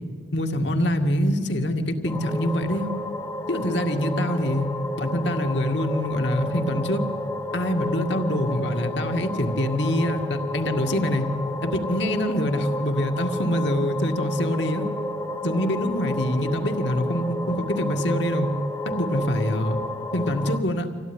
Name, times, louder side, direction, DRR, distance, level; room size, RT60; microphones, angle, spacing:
voice 1, 0.3-2.9 3.5-4.7 5.0-7.0 7.5-11.3 11.6-14.9 15.4-18.5 18.9-19.8 20.1-20.9, equal, 65° left, 5 dB, 2.1 m, -25 dB
sound 1, 2.1-20.6, left 1 dB, 15° left, 1.3 m, -31 dB
26.0 x 17.0 x 9.9 m, 2.2 s
head